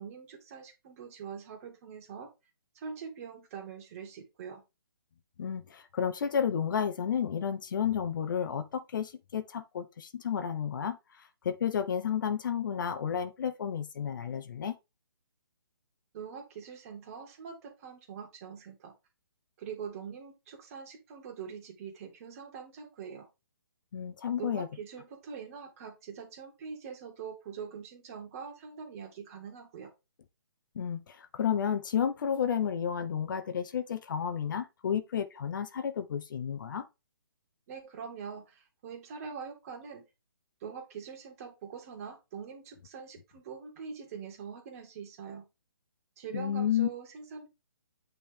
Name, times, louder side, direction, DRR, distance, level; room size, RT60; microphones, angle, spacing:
voice 1, 0.0-2.3 2.7-4.6 16.1-18.9 19.6-23.3 24.4-29.9 37.7-40.1 40.6-45.5 46.2-47.5, right 6 dB, 35° right, 2.4 m, -43 dB
voice 2, 5.4-14.8 23.9-24.7 30.7-36.8 46.3-46.9, left 8 dB, 50° left, 1.0 m, -31 dB
8.8 x 4.1 x 3.5 m
hypercardioid pair, 150°, 13 cm